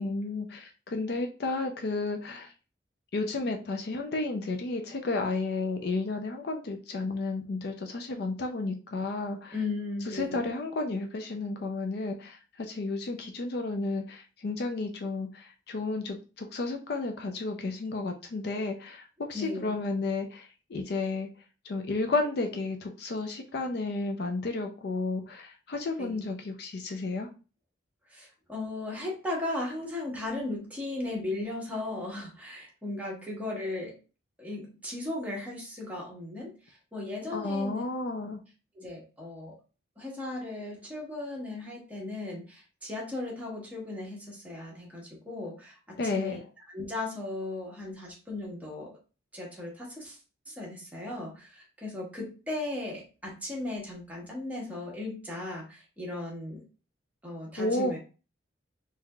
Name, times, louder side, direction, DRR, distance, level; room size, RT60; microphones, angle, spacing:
voice 1, 0.0-2.5 3.1-9.5 10.1-21.3 21.6-27.3 37.3-38.4 46.0-46.4 57.6-57.9, left 3 dB, 55° left, 4 dB, 0.4 m, -32 dB
voice 2, 9.5-10.5 19.3-19.8 26.0-26.3 28.1-34.0 34.4-37.8 38.7-39.6 40.0-46.4 46.7-49.0 49.3-50.2 50.5-56.6 57.2-58.0, left 2 dB, 10° right, -3 dB, 1.1 m, -37 dB
3.6 x 2.8 x 2.3 m, 0.33 s
head